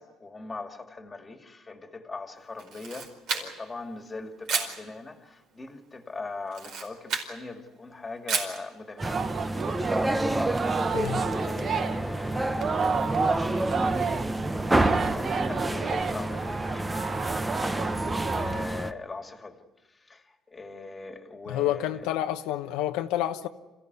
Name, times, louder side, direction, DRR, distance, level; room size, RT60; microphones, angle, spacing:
voice 1, 0.0-9.3 10.8-17.4 18.0-19.6 19.9-22.1, left 3 dB, 15° left, 2.1 m, -41 dB
Camera, 2.6-3.8 4.5-4.8 6.5-7.3 8.3-8.6, right 5 dB, 65° right, 4.8 m, -31 dB
sound 1, 9.0-18.9, right 1 dB, 10° right, 0.8 m, -29 dB
Singing, 9.0-18.7, right 5 dB, 35° right, 1.0 m, -31 dB
voice 2, 10.9-11.2 21.5-23.5, left 12 dB, 90° left, 1.0 m, -29 dB
27.5 x 15.5 x 9.6 m
cardioid pair, 130°, 0 cm